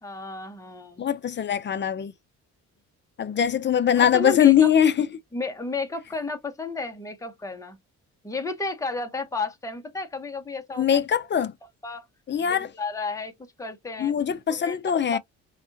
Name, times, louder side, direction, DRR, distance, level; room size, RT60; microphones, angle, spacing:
voice 1, 0.0-1.0 4.0-4.7 5.3-7.8 8.2-10.9 11.3-11.4 11.8-12.0 12.5-13.3 13.6-14.1 14.5-14.8 15.1-15.2, left 3 dB, 10° left, 1.0 m, -32 dB
voice 2, 1.0-2.1 3.2-5.1 10.8-11.5 12.3-12.7 14.0-15.2, left 9 dB, 35° left, 0.6 m, -21 dB
4.1 x 2.4 x 2.7 m
cardioid pair, 90°, 30 cm